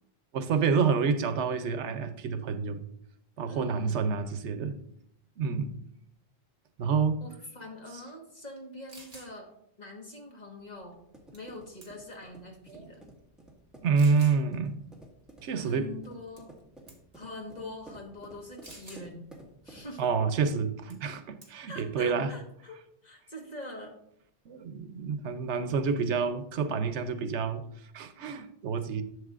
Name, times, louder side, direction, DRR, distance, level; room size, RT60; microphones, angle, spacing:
voice 1, 0.3-2.8 3.4-4.8 5.4-5.7 6.8-7.2 12.7-12.8 13.8-14.7 15.4-15.9 20.0-22.3 24.5-27.6 27.9-29.0, right 5 dB, 85° right, 10 dB, 1.0 m, -28 dB
voice 2, 3.5-4.1 7.2-9.5 9.8-11.0 11.3-13.1 15.6-16.5 17.1-19.3 19.6-20.0 21.7-24.0, left 1 dB, 40° left, 0 dB, 1.6 m, -44 dB
sound 1, 8.6-8.7 8.9-9.3 11.3-11.6 11.8-12.2 12.9-13.0 14.0-14.4 16.4-16.6 16.9-17.2 18.6-19.1 20.9-21.1 21.4-21.7, right 2 dB, 35° right, 1.3 m, -50 dB
sound 2, 10.6-20.4, right 1 dB, ahead, 1.6 m, -53 dB
11.0 x 7.3 x 2.5 m, 0.73 s
omnidirectional pair, 1.1 m